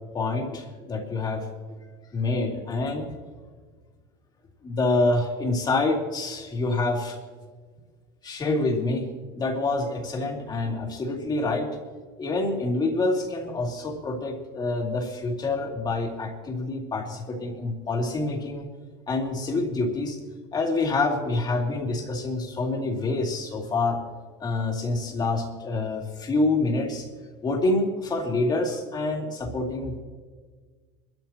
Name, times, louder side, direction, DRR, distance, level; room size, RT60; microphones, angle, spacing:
voice 1, 0.1-1.8 2.1-3.1 4.6-7.2 8.2-9.1 9.3-11.7 12.2-18.7 19.1-20.2 20.5-24.0 24.4-27.1 27.4-30.0, left 2 dB, 30° left, 0 dB, 2.9 m, -27 dB
22.5 x 13.5 x 3.0 m, 1.5 s
supercardioid pair, 100°, 14 cm